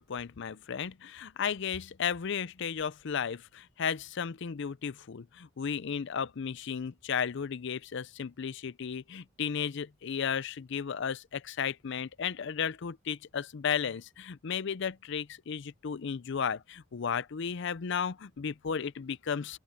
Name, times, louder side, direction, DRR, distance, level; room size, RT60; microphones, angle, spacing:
voice 1, 0.0-19.6, left 7 dB, 60° left, 0.5 m, -34 dB
open air
head